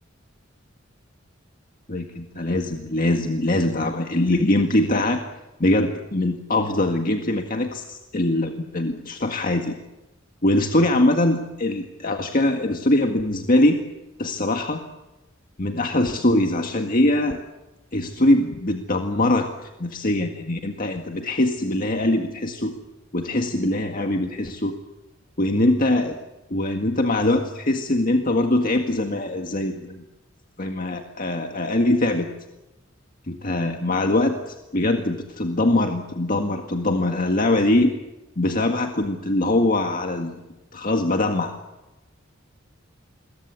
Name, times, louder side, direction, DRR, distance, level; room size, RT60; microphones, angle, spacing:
voice 1, 1.9-5.2 5.6-9.8 10.4-13.8 14.2-14.8 15.6-17.4 17.9-22.8 23.1-24.8 25.4-26.2 26.5-30.1 30.6-32.3 33.3-37.9 38.4-40.3 40.7-41.5, left 1 dB, 45° left, 4 dB, 1.8 m, -22 dB
28.0 x 22.5 x 8.4 m, 1.0 s
head